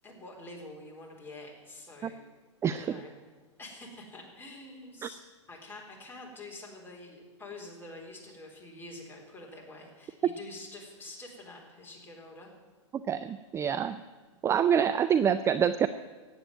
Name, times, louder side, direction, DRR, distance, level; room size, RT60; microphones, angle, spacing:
voice 1, 0.0-2.3 2.7-3.1 3.6-5.2 5.5-12.5 14.3-14.4, left 2 dB, 15° left, -1 dB, 3.9 m, -47 dB
voice 2, 13.1-14.0 14.4-15.9, right 8 dB, 15° right, 12 dB, 0.4 m, -26 dB
15.0 x 9.0 x 9.0 m, 1.4 s
hypercardioid pair, 110°, 16 cm